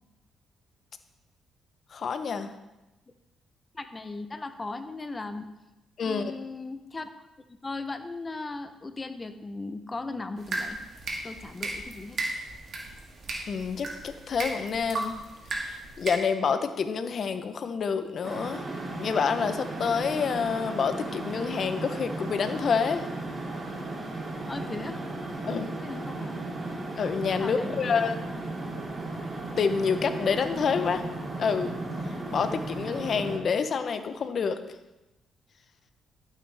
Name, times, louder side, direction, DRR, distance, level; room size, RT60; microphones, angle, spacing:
voice 1, 1.9-2.5 6.0-6.3 13.5-15.1 15.5-18.6 19.0-23.1 25.5-25.7 27.0-28.2 29.6-31.0 31.4-31.7 32.3-34.6, left 6 dB, 55° left, 9 dB, 0.8 m, -28 dB
voice 2, 3.7-5.5 6.0-7.1 7.5-10.8 11.2-12.2 24.5-25.0 25.8-26.4 27.4-27.9, left 3 dB, 25° left, 9 dB, 0.9 m, -37 dB
sound 1, 10.4-16.1, right 2 dB, 55° right, 2.2 m, -36 dB
sound 2, 18.2-33.4, right 2 dB, 35° right, 1.8 m, -35 dB
12.0 x 8.3 x 3.5 m, 1.0 s
cardioid pair, 90°, 0 cm